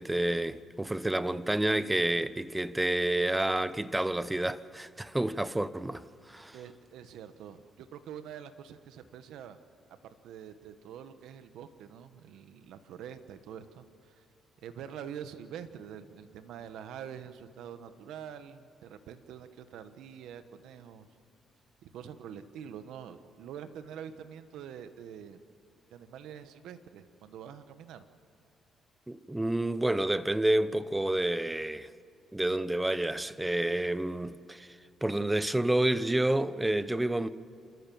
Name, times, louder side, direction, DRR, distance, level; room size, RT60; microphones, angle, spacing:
voice 1, 0.0-6.0 6.3-6.6 29.1-31.9 32.3-34.8 35.0-37.3, right 1 dB, 10° right, 0.9 m, -29 dB
voice 2, 6.5-9.6 10.2-14.2 14.6-21.1 21.8-25.4 25.9-28.0, right 8 dB, 85° right, 1.3 m, -45 dB
28.5 x 14.0 x 7.1 m
cardioid pair, 90°, 0 cm